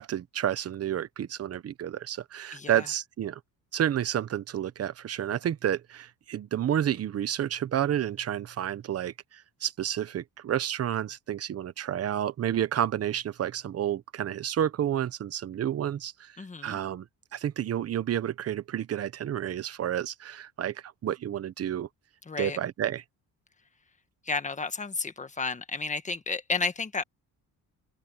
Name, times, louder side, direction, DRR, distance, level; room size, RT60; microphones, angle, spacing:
voice 1, 0.0-3.4 3.7-16.3 16.6-17.0 17.3-21.9 22.4-23.0, right 10 dB, 45° right, 1.0 m, -30 dB
voice 2, 2.5-2.9 16.4-16.8 22.2-22.6 24.2-27.0, left 4 dB, 20° left, 1.6 m, -32 dB
open air
cardioid pair, 125°, 35 cm